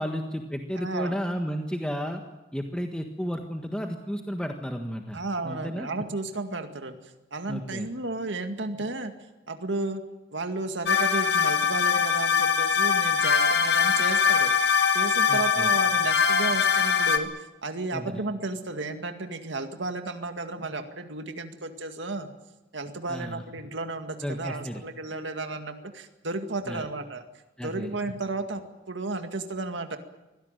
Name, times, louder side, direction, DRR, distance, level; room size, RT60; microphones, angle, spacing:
voice 1, 0.0-2.2 2.5-5.9 7.5-7.9 15.3-15.7 17.9-18.2 23.1-23.4 24.2-24.8 26.7-26.8 27.6-27.9, equal, 5° left, 3 dB, 1.5 m, -33 dB
voice 2, 0.8-1.2 5.1-9.1 9.5-10.0 10.3-14.5 14.9-22.3 22.7-27.2 27.6-28.6 28.9-30.0, right 2 dB, 85° right, 6 dB, 2.1 m, -33 dB
sound 1, 10.9-17.2, left 6 dB, 60° left, 1.8 m, -22 dB
24.0 x 17.5 x 9.1 m, 1.0 s
head